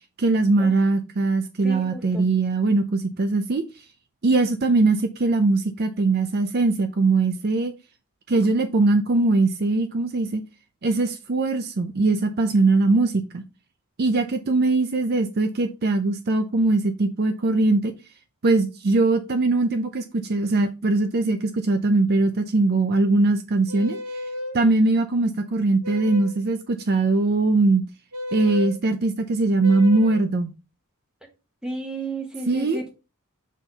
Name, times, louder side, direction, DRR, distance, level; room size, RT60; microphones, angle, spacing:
voice 1, 0.2-3.6 4.2-7.7 8.3-10.4 10.8-13.4 14.0-17.9 18.4-24.0 24.5-27.8 28.3-30.5 32.5-32.8, right 3 dB, 45° right, 0.5 m, -21 dB
voice 2, 1.6-2.2 31.6-32.9, right 2 dB, 5° right, 1.4 m, -33 dB
sound 1, 23.7-24.6 25.8-26.4 28.1-28.8 29.6-30.3, left 2 dB, 85° right, 1.1 m, -32 dB
6.3 x 3.8 x 4.0 m
head